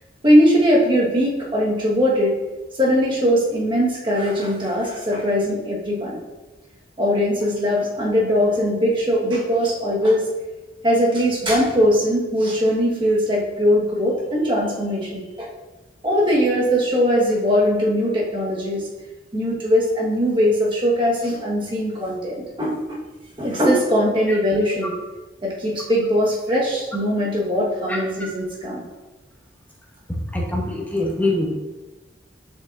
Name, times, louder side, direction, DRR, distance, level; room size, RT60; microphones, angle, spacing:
voice 1, 0.2-2.3 2.8-6.2 7.0-10.3 10.8-15.5 16.0-18.9 19.3-23.0 23.4-24.9 25.4-28.8, equal, 30° right, -4 dB, 1.3 m, -20 dB
voice 2, 30.3-31.5, left 2 dB, 10° left, -3 dB, 1.0 m, -23 dB
7.0 x 5.3 x 2.5 m, 1.1 s
head